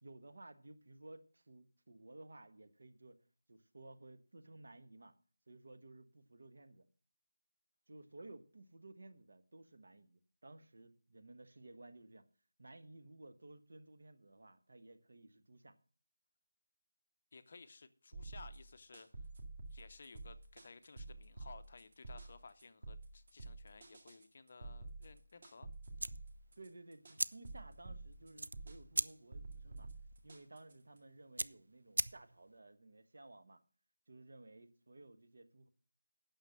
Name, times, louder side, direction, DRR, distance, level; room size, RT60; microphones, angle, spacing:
voice 1, 0.0-3.2 3.5-5.1 5.5-6.8 7.9-12.3 12.6-15.8 26.6-29.9 30.2-33.6 34.1-35.7, right 2 dB, 50° right, 1.1 m, -56 dB
voice 2, 17.3-19.1 19.7-25.7, left 4 dB, 30° left, 0.7 m, -57 dB
sound 1, 18.1-31.0, right 2 dB, 30° right, 1.9 m, -50 dB
sound 2, 25.9-32.6, right 2 dB, 85° right, 0.6 m, -42 dB
9.2 x 6.6 x 7.6 m
figure-of-eight pair, 180°, 0 cm